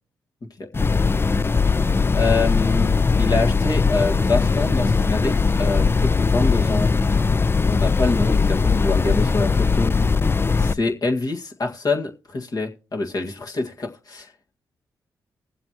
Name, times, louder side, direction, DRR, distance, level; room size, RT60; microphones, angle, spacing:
sound 1, 0.7-10.7, left 4 dB, 30° left, 0.5 m, -19 dB
voice 1, 2.1-6.9 7.7-10.0 10.6-14.3, left 3 dB, 50° left, 1.8 m, -25 dB
21.0 x 7.5 x 3.0 m
supercardioid pair, 55°, 8 cm